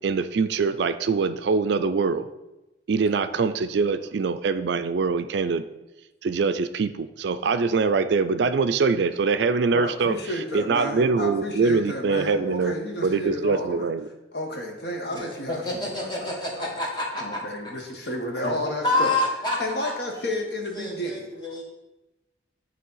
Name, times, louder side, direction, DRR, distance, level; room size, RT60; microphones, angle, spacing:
voice 1, 0.0-2.3 2.9-5.6 6.2-10.1 10.5-12.8 13.0-14.1, right 4 dB, 65° right, 11 dB, 0.4 m, -23 dB
voice 2, 9.7-13.9 14.3-16.7 17.2-19.2 19.6-21.3, left 1 dB, 60° left, 2 dB, 1.2 m, -32 dB
voice 3, 15.1-17.7 18.4-18.5 18.8-19.9 20.7-21.6, left 2 dB, 20° left, -2 dB, 1.6 m, -28 dB
9.3 x 3.3 x 5.5 m, 1.0 s
head